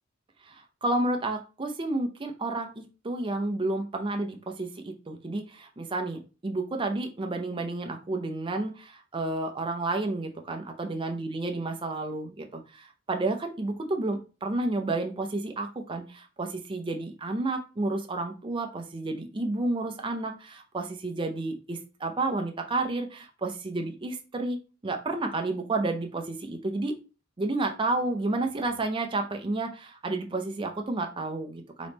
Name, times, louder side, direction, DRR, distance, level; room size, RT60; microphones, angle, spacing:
voice 1, 0.5-24.6 24.8-26.9 27.4-31.9, right 2 dB, 25° right, 4 dB, 0.5 m, -31 dB
3.5 x 3.0 x 4.0 m, 0.32 s
head